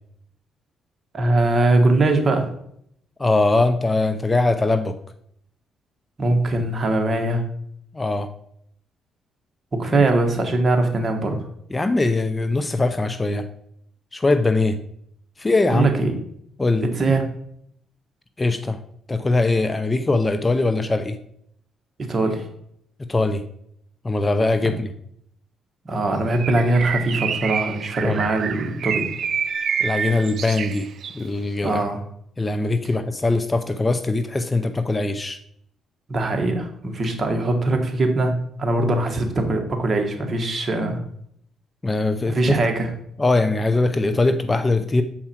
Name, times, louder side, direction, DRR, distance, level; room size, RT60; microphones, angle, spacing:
voice 1, 1.1-2.5 6.2-7.4 9.7-11.4 15.7-16.1 16.8-17.2 22.0-22.5 25.8-29.0 31.6-32.0 36.1-41.0 42.3-42.9, right 2 dB, 35° right, 4 dB, 1.4 m, -21 dB
voice 2, 3.2-4.9 7.9-8.3 9.8-10.0 11.7-13.4 14.1-14.8 15.4-15.9 16.6-16.9 18.4-18.8 19.1-21.2 23.0-23.4 24.0-24.9 28.0-28.3 29.8-30.9 31.1-31.8 32.4-35.4 41.8-42.4 43.2-45.0, left 2 dB, 20° left, 9 dB, 0.5 m, -21 dB
Bird, 26.3-31.2, right 7 dB, 60° right, 0.4 m, -27 dB
7.3 x 4.8 x 4.4 m, 0.70 s
cardioid pair, 90°, 0 cm